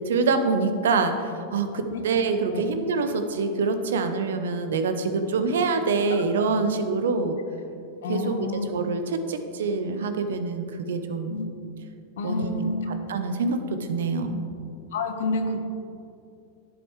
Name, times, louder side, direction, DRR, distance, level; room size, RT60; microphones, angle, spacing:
voice 1, 0.0-7.4 8.1-11.3 12.2-14.4, right 4 dB, 75° right, 8 dB, 0.7 m, -26 dB
voice 2, 2.3-2.6 8.0-8.7 11.3-11.5 12.2-12.8 14.9-15.6, left 3 dB, 75° left, 6 dB, 0.9 m, -29 dB
11.0 x 7.3 x 3.1 m, 2.5 s
hypercardioid pair, 95°, 0 cm